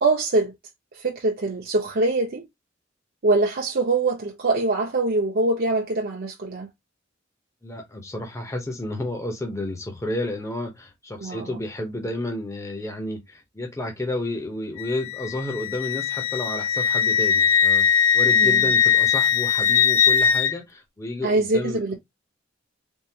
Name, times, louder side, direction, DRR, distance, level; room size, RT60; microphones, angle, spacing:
voice 1, 0.0-0.5 0.9-2.4 3.2-6.7 11.2-11.5 18.4-18.6 21.2-22.0, right 2 dB, 55° right, 0.7 m, -23 dB
voice 2, 7.6-22.0, left 1 dB, 15° left, 0.7 m, -31 dB
Wind instrument woodwind instrument, 14.8-20.5, left 7 dB, 90° left, 0.4 m, -20 dB
3.7 x 2.4 x 2.7 m
head